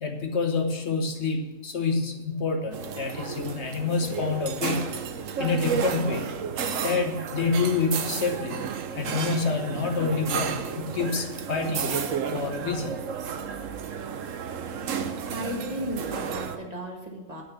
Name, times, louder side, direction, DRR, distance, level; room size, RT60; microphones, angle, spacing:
voice 1, 0.0-4.9 5.4-6.3 6.8-8.6 8.9-13.0, left 4 dB, 60° left, 4 dB, 1.3 m, -28 dB
sound 1, 2.7-16.6, right 7 dB, 90° right, 1.2 m, -32 dB
voice 2, 15.2-17.4, equal, 30° right, 0 dB, 1.7 m, -35 dB
8.7 x 6.5 x 7.2 m, 1.1 s
omnidirectional pair, 1.3 m